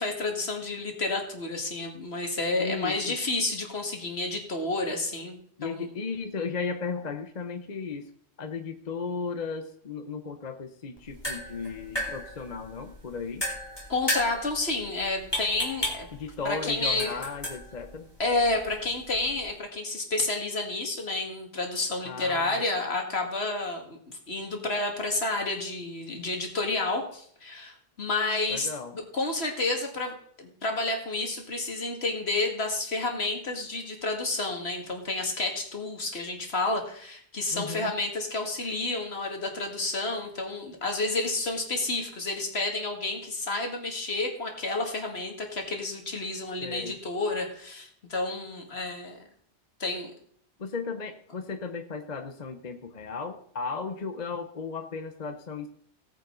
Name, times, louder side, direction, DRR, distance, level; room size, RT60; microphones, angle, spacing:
voice 1, 0.0-5.8 13.9-16.1 16.4-17.2 18.2-49.2 49.8-50.1, left 2 dB, 70° left, 3 dB, 2.3 m, -30 dB
voice 2, 2.6-3.2 5.6-8.1 8.4-13.4 16.1-18.1 22.0-22.6 28.5-28.9 37.5-37.9 46.6-47.0 50.6-55.7, left 5 dB, 40° left, 7 dB, 1.0 m, -35 dB
sound 1, 11.0-19.6, left 1 dB, 20° left, 2.7 m, -36 dB
17.5 x 9.0 x 3.9 m, 0.63 s
omnidirectional pair, 1.1 m